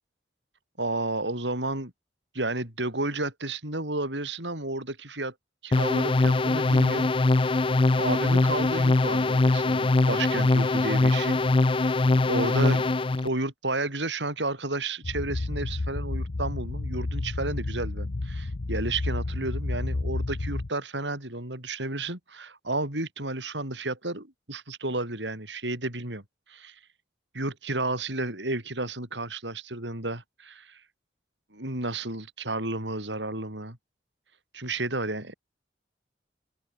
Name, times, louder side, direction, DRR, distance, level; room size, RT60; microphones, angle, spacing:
voice 1, 0.8-1.9 2.3-5.3 5.6-7.1 7.4-11.4 12.2-12.9 13.2-26.2 26.5-26.8 27.3-30.8 31.5-33.8 34.5-35.3, right 2 dB, 85° right, 7.1 m, -32 dB
sound 1, 5.7-13.3, left 2 dB, 30° left, 0.5 m, -22 dB
sound 2, 15.0-20.7, left 2 dB, 70° left, 0.9 m, -31 dB
open air
head